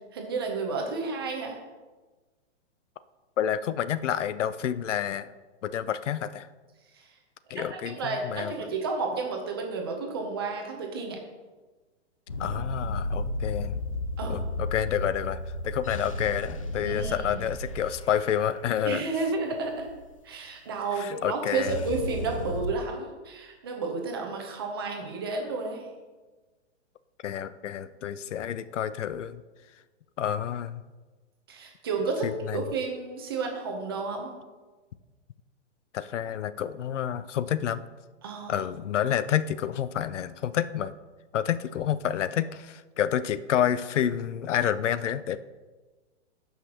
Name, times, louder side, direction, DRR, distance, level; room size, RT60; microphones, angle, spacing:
voice 1, 0.1-1.6 7.0-7.1 7.5-7.7 7.9-11.2 14.2-14.4 16.9-17.4 18.8-19.9 20.2-25.9 31.5-34.4 38.2-39.1, right 4 dB, 20° right, 2 dB, 0.7 m, -32 dB
voice 2, 3.4-5.3 5.6-6.5 7.5-8.5 12.4-13.8 14.3-19.0 21.0-21.8 27.2-29.4 30.2-30.8 32.2-32.6 35.9-37.8 38.5-40.9 41.3-45.4, left 9 dB, 80° left, 15 dB, 0.6 m, -29 dB
sound 1, 12.3-20.1 21.6-22.7, left 1 dB, 30° left, 0.4 m, -33 dB
17.5 x 5.8 x 2.9 m, 1.3 s
hypercardioid pair, 180°, 36 cm